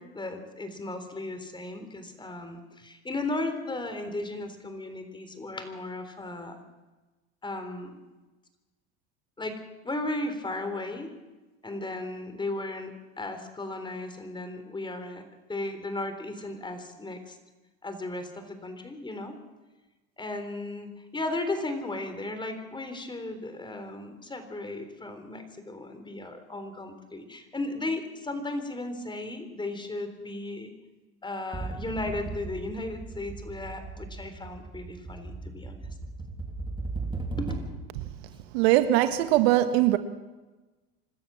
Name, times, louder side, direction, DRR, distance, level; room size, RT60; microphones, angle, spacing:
voice 1, 0.0-6.6 7.4-8.0 9.4-9.6 9.8-11.1 11.6-15.2 15.5-17.4 17.8-19.4 20.2-30.7 31.2-35.8 37.4-37.5, left 2 dB, 15° left, 3.7 m, -35 dB
sound 1, 31.5-37.9, right 3 dB, 15° right, 3.5 m, -37 dB
voice 2, 38.5-40.0, right 14 dB, 80° right, 1.6 m, -21 dB
26.0 x 13.0 x 7.6 m
supercardioid pair, 105°, 32 cm